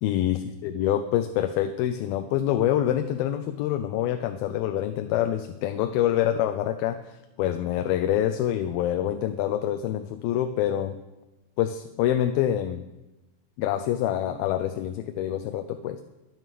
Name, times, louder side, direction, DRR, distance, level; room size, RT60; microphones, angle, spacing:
voice 1, 0.0-7.0 7.4-11.0 11.6-12.8 13.6-16.0, left 11 dB, 85° left, 9 dB, 2.5 m, -26 dB
12.0 x 11.0 x 6.8 m, 1.0 s
omnidirectional pair, 4.3 m